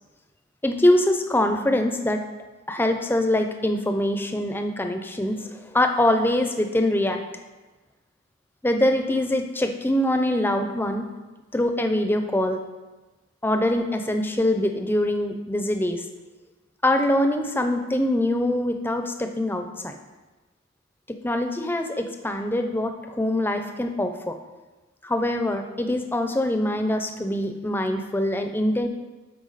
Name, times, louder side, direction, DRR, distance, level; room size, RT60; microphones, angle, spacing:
voice 1, 0.6-2.2 2.7-7.2 8.6-11.1 11.5-12.6 13.4-16.0 16.8-20.0 21.1-24.4 25.0-28.9, left 1 dB, 10° left, 6 dB, 0.5 m, -24 dB
12.5 x 4.6 x 4.0 m, 1.2 s
head